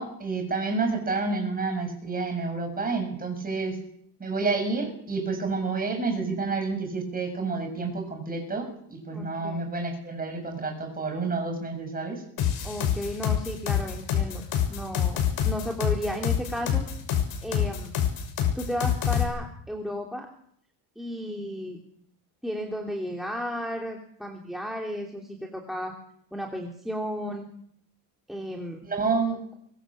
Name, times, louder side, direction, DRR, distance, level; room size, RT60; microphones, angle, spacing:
voice 1, 0.0-3.7 4.2-12.2 28.8-29.4, right 4 dB, 20° right, 5 dB, 7.0 m, -29 dB
voice 2, 9.1-9.7 12.6-16.9 17.4-17.9 18.5-20.3 21.0-21.8 22.4-25.9 26.3-27.5 28.3-28.8, equal, ahead, 1 dB, 3.0 m, -34 dB
sound 1, 12.4-19.2, left 9 dB, 55° left, 6.3 m, -25 dB
24.0 x 22.0 x 7.6 m, 0.69 s
cardioid pair, 155°, 44 cm